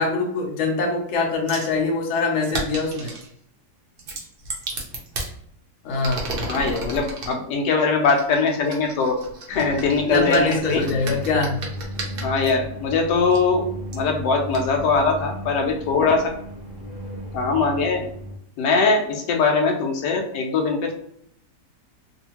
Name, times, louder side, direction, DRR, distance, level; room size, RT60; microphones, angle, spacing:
voice 1, 0.0-3.1 5.8-6.2 10.0-11.6, left 3 dB, 60° left, 1 dB, 0.9 m, -23 dB
sound 1, 1.5-1.7 2.4-3.3 4.0-5.3 5.9-7.3 8.1-12.5 13.3-13.4 13.9-14.0 14.5-14.6, right 2 dB, 60° right, 0.6 m, -33 dB
voice 2, 6.5-9.2 9.5-10.8 12.2-13.7 13.9-16.3 17.3-18.1 18.6-20.9, left 4 dB, 80° left, 2 dB, 1.2 m, -21 dB
sound 2, 9.5-18.4, equal, 30° left, 0.4 m, -35 dB
2.7 x 2.6 x 2.9 m, 0.69 s
omnidirectional pair, 1.8 m